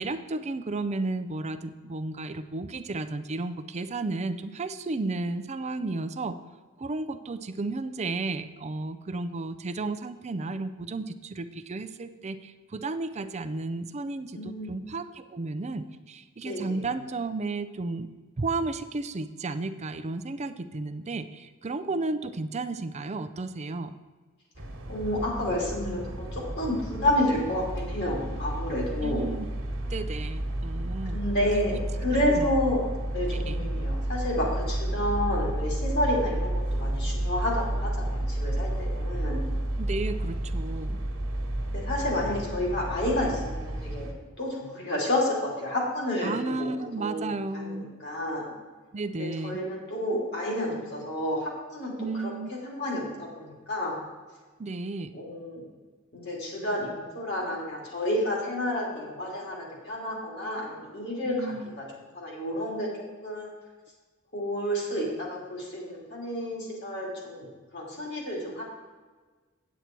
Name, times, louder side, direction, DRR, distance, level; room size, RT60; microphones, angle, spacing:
voice 1, 0.0-6.4 6.8-18.1 18.4-24.0 29.0-29.5 29.9-31.2 31.5-31.8 32.3-32.5 33.3-33.6 39.8-41.0 46.2-47.9 48.9-49.6 52.0-52.5 54.6-55.1 61.2-61.7, right 3 dB, 30° right, 10 dB, 0.5 m, -33 dB
voice 2, 14.3-14.7 16.4-16.8 24.9-29.3 31.1-31.7 32.0-32.8 33.1-39.5 41.7-44.1 44.4-46.7 47.0-48.5 49.2-52.2 52.6-54.0 55.1-55.7 56.1-61.8 62.1-62.9 63.2-63.5 64.3-67.5 67.7-68.6, left 1 dB, 50° left, -3 dB, 2.9 m, -30 dB
sound 1, 24.6-44.1, right 1 dB, 60° right, 1.4 m, -31 dB
8.7 x 8.1 x 4.5 m, 1.4 s
head